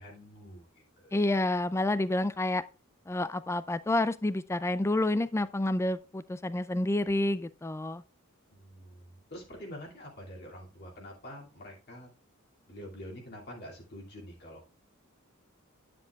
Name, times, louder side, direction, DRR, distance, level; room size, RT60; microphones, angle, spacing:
voice 1, 0.0-1.2 8.5-12.1 12.7-14.6, equal, 50° left, 2.5 m, -46 dB
voice 2, 1.1-2.6 3.1-8.0, left 1 dB, 15° left, 0.3 m, -29 dB
10.0 x 7.6 x 2.3 m
head